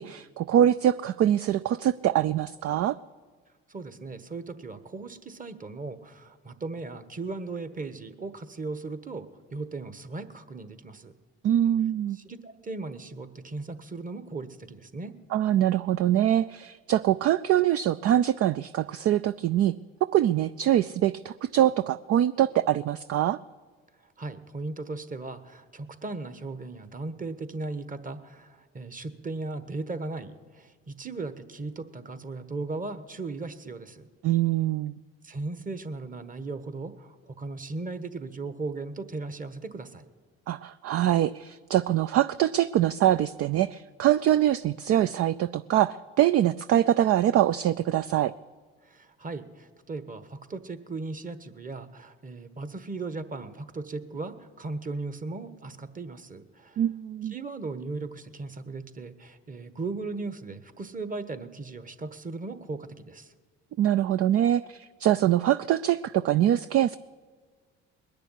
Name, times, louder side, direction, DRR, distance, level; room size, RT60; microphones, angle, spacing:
voice 1, 0.0-3.0 11.4-12.2 15.3-19.7 20.1-23.4 34.2-34.9 40.5-48.3 56.8-57.3 63.8-67.0, right 11 dB, 50° right, 15 dB, 0.4 m, -24 dB
voice 2, 3.7-11.1 12.1-15.1 24.2-34.1 35.2-40.1 48.8-56.8 57.3-63.3, right 3 dB, 25° right, 11 dB, 1.3 m, -37 dB
20.5 x 6.9 x 10.0 m, 1.5 s
supercardioid pair, 75°, 30 cm